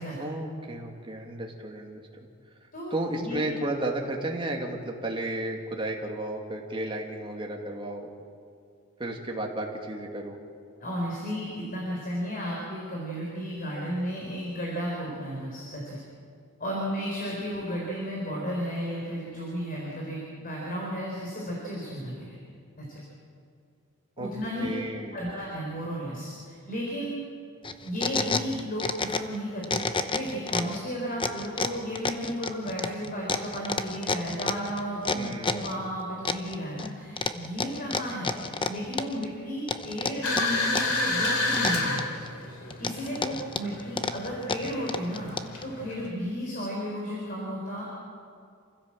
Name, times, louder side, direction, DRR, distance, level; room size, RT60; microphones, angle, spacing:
voice 1, 0.2-2.0 2.9-8.1 9.0-10.4 24.2-24.3 24.6-25.3 35.1-35.8, right 1 dB, 25° right, 1 dB, 2.4 m, -33 dB
voice 2, 2.7-3.4 10.8-16.0 16.6-22.4 22.8-23.0 24.2-24.8 25.1-27.2 27.8-42.1 42.6-45.3 45.6-47.8, equal, 40° left, -3 dB, 4.5 m, -33 dB
sound 1, 27.6-29.4 29.6-30.8 31.2-35.7 36.3-36.9 37.2-39.3 39.7-41.0 41.3-42.3 42.7-45.6, left 4 dB, 25° left, 0.8 m, -30 dB
sound 2, 40.2-46.1, left 2 dB, 85° left, 3.2 m, -30 dB
27.5 x 15.5 x 7.6 m, 2.4 s
head